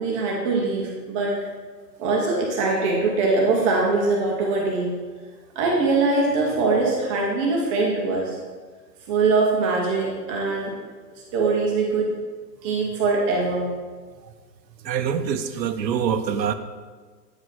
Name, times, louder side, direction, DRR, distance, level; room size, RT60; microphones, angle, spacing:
voice 1, 0.0-1.4 2.0-4.9 5.6-8.4 9.1-10.8 11.3-12.1 12.6-13.7, right 3 dB, 20° right, -2 dB, 0.7 m, -22 dB
voice 2, 14.9-16.5, right 7 dB, 85° right, 10 dB, 0.8 m, -24 dB
8.7 x 4.8 x 4.1 m, 1.5 s
hypercardioid pair, 145°, 49 cm